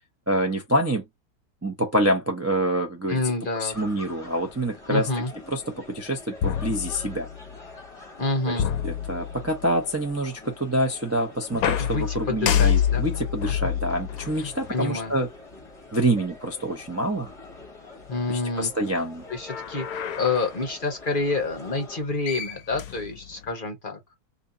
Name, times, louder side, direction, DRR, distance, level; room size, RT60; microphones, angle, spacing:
voice 1, 0.3-1.0 1.6-3.2 3.6-5.1 5.5-5.6 5.9-7.3 8.5-15.3 15.9-17.3 18.3-19.2, right 1 dB, 25° right, 0.3 m, -26 dB
voice 2, 3.1-3.7 4.9-5.3 8.2-8.7 11.8-13.0 14.4-15.2 18.1-18.7 19.3-24.1, left 3 dB, 40° left, 0.9 m, -28 dB
sound 1, 3.7-22.0, left 2 dB, 25° left, 1.3 m, -45 dB
sound 2, 6.4-7.5 8.6-9.7 11.5-15.1 15.9-16.0 19.3-20.6 21.9-22.0 22.3-23.5, left 9 dB, 70° left, 1.0 m, -28 dB
3.0 x 2.7 x 3.8 m
omnidirectional pair, 1.7 m